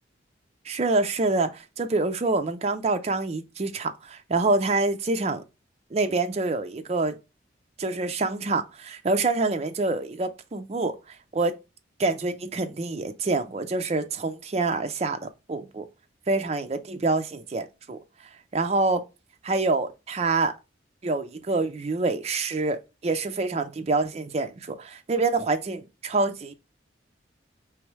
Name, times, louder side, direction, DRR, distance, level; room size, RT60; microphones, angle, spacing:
voice 1, 0.7-5.4 5.9-7.2 7.8-11.0 11.3-11.6 12.0-15.9 16.3-18.0 18.5-19.0 19.4-20.5 21.0-26.5, right 3 dB, 35° right, 0.4 m, -26 dB
4.8 x 3.1 x 3.1 m
head